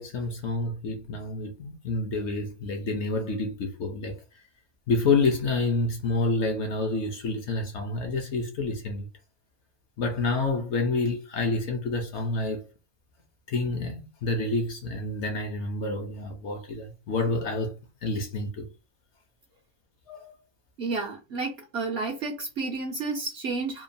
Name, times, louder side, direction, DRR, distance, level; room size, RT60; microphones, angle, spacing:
voice 1, 0.0-4.2 4.9-9.1 10.0-12.6 13.5-17.7 18.0-18.7 20.1-20.3, left 3 dB, 65° left, 0.8 m, -28 dB
voice 2, 20.8-23.8, right 3 dB, 60° right, 0.7 m, -31 dB
2.9 x 2.3 x 2.5 m
omnidirectional pair, 1.5 m